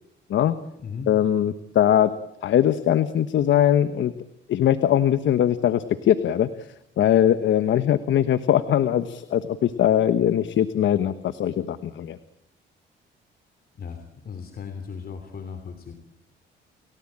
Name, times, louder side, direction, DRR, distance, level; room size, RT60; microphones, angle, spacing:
voice 1, 1.1-2.1 2.4-4.1 4.5-6.5 7.0-12.2, left 10 dB, 70° left, 12 dB, 1.3 m, -21 dB
voice 2, 13.8-15.9, left 6 dB, 50° left, 8 dB, 3.0 m, -36 dB
29.5 x 17.5 x 8.8 m, 0.84 s
cardioid pair, 90°, 20 cm